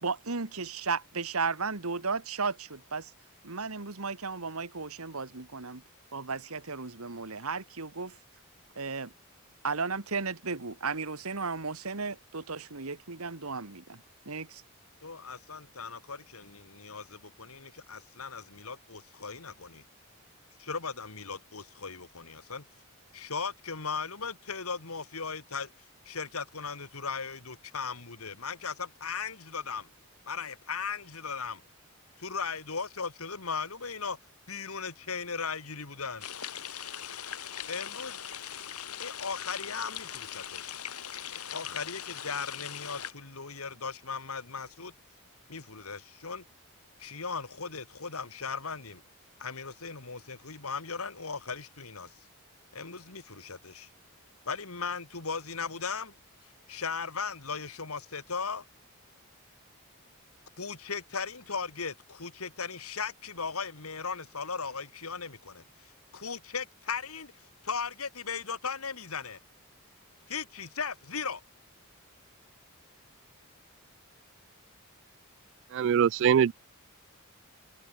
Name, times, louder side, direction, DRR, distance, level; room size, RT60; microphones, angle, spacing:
voice 1, 0.0-3.1 3.4-5.8 6.1-8.2 8.7-9.1 9.6-14.6, right 4 dB, 75° right, 1.7 m, -34 dB
voice 2, 15.0-19.8 20.6-22.6 23.1-25.7 26.1-29.9 30.3-31.6 32.2-34.2 34.5-36.3 37.7-38.2 39.0-40.8 41.3-44.9 45.5-46.4 47.0-49.0 49.4-52.1 52.7-53.9 54.5-56.1 56.7-58.6 60.6-67.3 67.6-69.4 70.3-71.4, left 5 dB, 75° left, 2.3 m, -37 dB
sound 1, 36.2-43.1, left 9 dB, 90° left, 7.2 m, -40 dB
voice 3, 75.7-76.5, right 8 dB, 55° right, 0.3 m, -22 dB
head